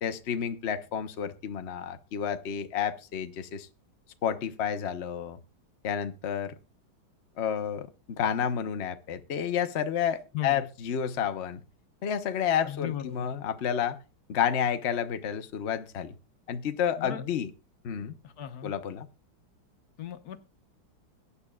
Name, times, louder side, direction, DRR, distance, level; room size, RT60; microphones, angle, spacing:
voice 1, 0.0-3.7 4.2-5.4 5.8-6.5 7.4-11.6 12.0-14.0 14.3-16.1 16.5-17.5 17.8-18.1 18.6-19.1, left 8 dB, 80° left, 0.6 m, -30 dB
voice 2, 10.3-10.7 12.6-13.3 17.0-17.2 18.2-18.7 20.0-20.4, left 11 dB, 55° left, 1.2 m, -36 dB
22.0 x 9.7 x 2.3 m
omnidirectional pair, 2.3 m